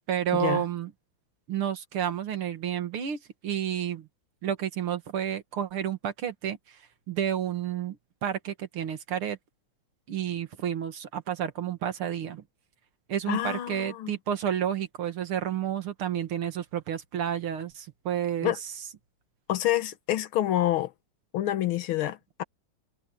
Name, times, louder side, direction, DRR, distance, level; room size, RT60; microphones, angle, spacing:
voice 1, 0.1-0.9 1.5-4.1 4.4-6.8 7.1-9.4 10.1-12.4 13.1-18.7, right 9 dB, 90° right, 2.5 m, -30 dB
voice 2, 13.3-14.1 18.4-18.6 19.5-20.9 21.3-22.4, left 13 dB, 80° left, 1.9 m, -27 dB
omnidirectional pair, 2.3 m